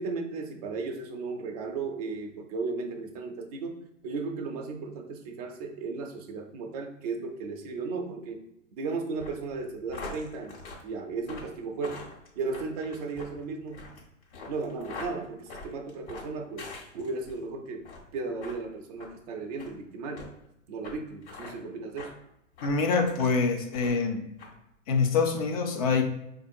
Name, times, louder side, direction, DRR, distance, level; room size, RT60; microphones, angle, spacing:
voice 1, 0.0-3.8 4.0-8.4 8.7-10.6 10.8-12.1 12.4-13.9 14.5-16.7 16.9-17.9 18.1-20.3 20.7-22.1, right 4 dB, 30° right, 4 dB, 0.5 m, -35 dB
sound 1, 9.2-17.4 17.8-18.1 18.4-18.6 19.0-19.1 19.6-19.7 20.2-20.3 20.8-20.9 21.2-21.5 22.0-22.1 22.6-23.4 23.7-24.1 24.4-24.5, left 3 dB, 45° left, 1.4 m, -43 dB
voice 2, 22.6-24.2 24.9-26.0, left 4 dB, 30° left, 4 dB, 0.5 m, -25 dB
4.3 x 2.6 x 2.6 m, 0.85 s
hypercardioid pair, 125°, 40 cm